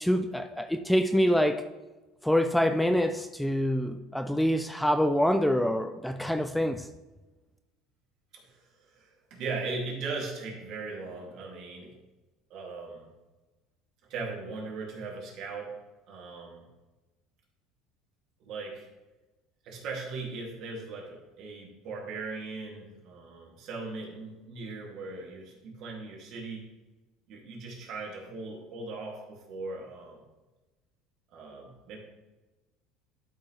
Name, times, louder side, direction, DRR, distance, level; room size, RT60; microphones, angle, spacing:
voice 1, 0.0-1.7 2.2-6.9, equal, 5° left, 9 dB, 0.3 m, -26 dB
voice 2, 8.3-11.9 12.5-13.1 14.1-15.8 16.1-16.6 18.4-18.9 19.6-26.6 27.3-30.2 31.3-32.0, right 3 dB, 55° right, -2 dB, 2.5 m, -39 dB
11.5 x 5.8 x 3.3 m, 1.1 s
supercardioid pair, 125°, 0 cm